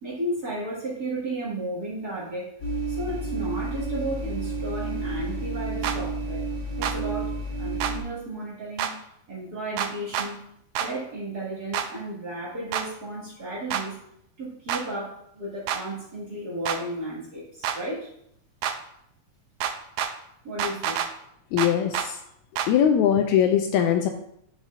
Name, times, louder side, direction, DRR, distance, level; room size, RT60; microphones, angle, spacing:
voice 1, 0.0-2.5 2.9-6.5 6.8-8.9 9.3-10.4 10.8-14.0 14.4-18.1 20.4-21.0, right 1 dB, 35° right, -7 dB, 2.1 m, -34 dB
sound 1, 2.6-8.0, right 2 dB, 35° left, 3.5 m, -31 dB
sound 2, 5.8-6.0 6.8-7.0 7.8-7.9 8.8-8.9 9.8-10.3 10.8-10.9 11.7-11.9 12.7-12.9 13.7-13.8 14.7-14.8 15.7-15.8 16.7-16.8 17.6-17.8 18.6-18.8 19.6-20.1 20.6-21.1 21.6-22.1 22.6-22.7, right 9 dB, 75° right, 1.8 m, -27 dB
voice 2, 21.5-22.2 22.6-24.1, left 9 dB, 80° left, 6 dB, 1.8 m, -21 dB
10.5 x 6.3 x 2.5 m, 0.73 s
omnidirectional pair, 3.6 m